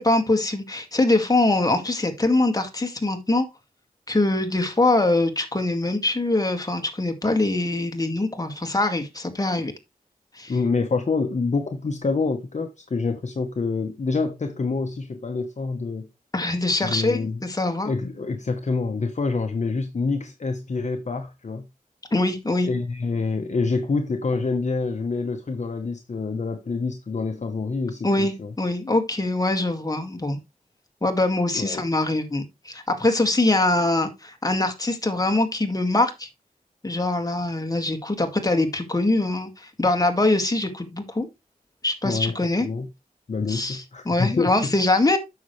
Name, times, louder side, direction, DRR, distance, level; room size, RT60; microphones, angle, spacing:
voice 1, 0.0-3.5 4.1-9.7 10.3-10.6 16.3-17.9 22.1-22.7 28.0-30.4 31.0-36.3 36.8-41.3 41.8-42.7 43.5-45.2, left 2 dB, 25° left, 1.9 m, -23 dB
voice 2, 10.5-16.1 16.8-17.4 17.8-21.7 22.6-28.5 31.5-31.8 42.0-42.3 42.6-42.9 43.3-44.7, left 4 dB, 50° left, 1.0 m, -27 dB
9.4 x 6.6 x 3.2 m
wide cardioid pair, 70°, 15 cm